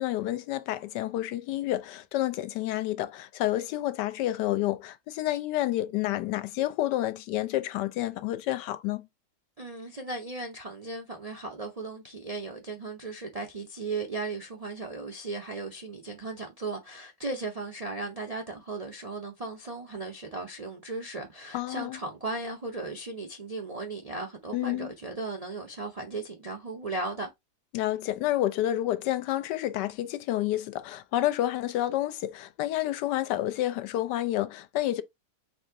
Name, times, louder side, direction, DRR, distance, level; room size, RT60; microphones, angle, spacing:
voice 1, 0.0-9.1 21.5-22.0 24.5-24.9 27.7-35.0, left 14 dB, 90° left, 1.2 m, -29 dB
voice 2, 9.6-27.3, right 3 dB, 65° right, 0.3 m, -36 dB
4.1 x 2.6 x 4.6 m
omnidirectional pair, 1.8 m